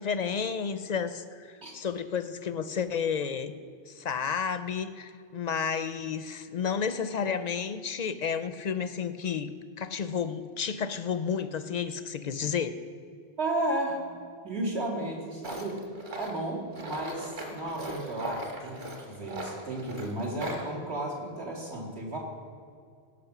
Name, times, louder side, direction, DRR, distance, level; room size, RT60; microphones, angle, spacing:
voice 1, 0.0-3.5 3.9-9.5 9.8-12.7, left 6 dB, 55° left, 12 dB, 0.5 m, -31 dB
voice 2, 13.4-14.2 14.4-15.8 16.2-22.2, right 1 dB, 75° right, -3 dB, 2.8 m, -33 dB
Tools, 15.4-20.7, right 1 dB, 45° right, 1.7 m, -39 dB
17.0 x 6.1 x 6.0 m, 2.3 s
omnidirectional pair, 1.1 m